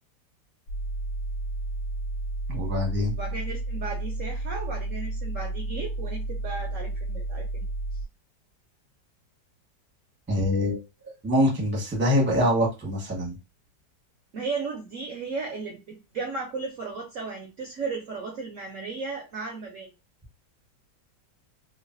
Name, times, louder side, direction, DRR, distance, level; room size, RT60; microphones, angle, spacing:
sound 1, 0.7-8.0, right 2 dB, 70° left, 1.1 m, -32 dB
voice 1, 2.5-3.1 10.3-10.8 11.2-13.3, left 1 dB, 10° right, -2 dB, 0.6 m, -24 dB
voice 2, 3.2-7.6 14.3-19.9, right 4 dB, 65° right, 1 dB, 0.7 m, -35 dB
3.1 x 2.3 x 2.5 m, 0.26 s
omnidirectional pair, 1.9 m